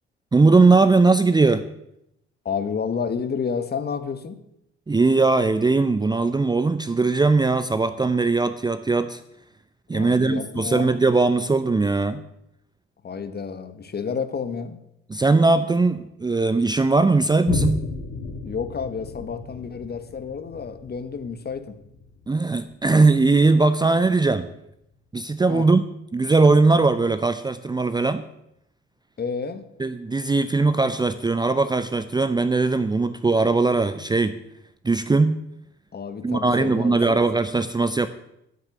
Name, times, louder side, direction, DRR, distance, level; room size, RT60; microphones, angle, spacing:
voice 1, 0.3-1.6 4.9-9.2 9.9-12.2 15.1-17.8 22.3-24.5 25.1-25.8 26.1-28.2 29.8-34.4 34.8-35.4 36.2-38.1, right 3 dB, 15° right, 13 dB, 0.7 m, -20 dB
voice 2, 2.4-4.4 9.9-11.0 13.0-14.8 18.4-21.8 25.5-25.7 29.2-29.6 35.9-37.2, left 6 dB, 30° left, 11 dB, 1.4 m, -30 dB
Boom, 17.5-24.4 24.9-25.0, left 5 dB, 55° left, 1.8 m, -34 dB
13.0 x 6.7 x 8.3 m, 0.82 s
figure-of-eight pair, 50°, 33 cm